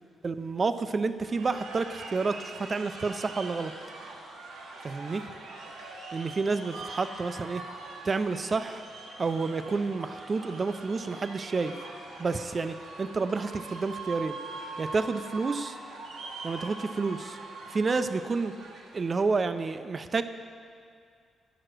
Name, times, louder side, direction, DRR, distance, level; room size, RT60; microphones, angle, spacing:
voice 1, 0.2-3.7 4.8-5.2 6.1-7.6 8.0-8.8 9.2-11.7 12.2-14.4 14.8-15.8 16.4-17.4 17.7-18.5 18.9-20.2, right 4 dB, 40° right, 11 dB, 0.4 m, -29 dB
sound 1, 1.3-19.3, right 3 dB, 90° right, 1.1 m, -43 dB
9.0 x 4.9 x 6.0 m, 2.2 s
cardioid pair, 85°, 0 cm